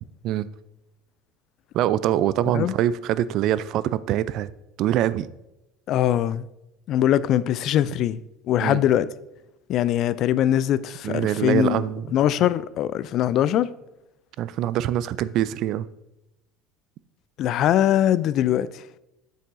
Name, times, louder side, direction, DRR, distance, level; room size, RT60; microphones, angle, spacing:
voice 1, 1.7-4.5 4.8-5.3 8.6-8.8 11.0-12.0 14.4-15.9, right 12 dB, 60° right, 0.4 m, -24 dB
voice 2, 5.9-6.5 6.9-8.2 8.5-9.1 9.7-11.8 12.1-13.7 17.4-18.8, left 11 dB, 55° left, 0.3 m, -22 dB
9.1 x 7.8 x 2.6 m
hypercardioid pair, 75°, 0 cm